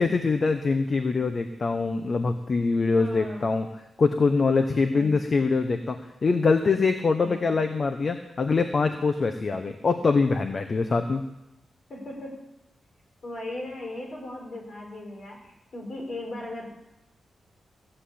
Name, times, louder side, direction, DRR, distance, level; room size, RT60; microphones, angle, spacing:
voice 1, 0.0-3.7 4.0-6.0 6.2-11.2, left 4 dB, 35° left, 7 dB, 0.8 m, -24 dB
voice 2, 3.0-3.5 4.9-5.2 7.2-7.6 11.9-12.4 13.2-16.7, left 1 dB, 50° left, -1 dB, 5.0 m, -37 dB
15.5 x 7.7 x 8.5 m, 0.89 s
wide cardioid pair, 170°, 0 cm